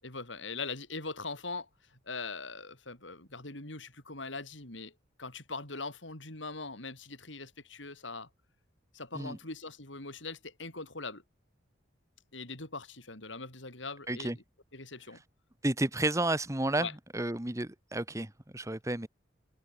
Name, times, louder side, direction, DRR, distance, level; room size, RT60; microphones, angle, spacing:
voice 1, 0.0-4.9 5.2-8.3 8.9-11.2 12.3-14.3 14.7-15.2 16.8-16.9, left 3 dB, 80° left, 6.1 m, -41 dB
voice 2, 15.6-16.9 17.1-19.1, right 1 dB, 15° right, 1.2 m, -31 dB
head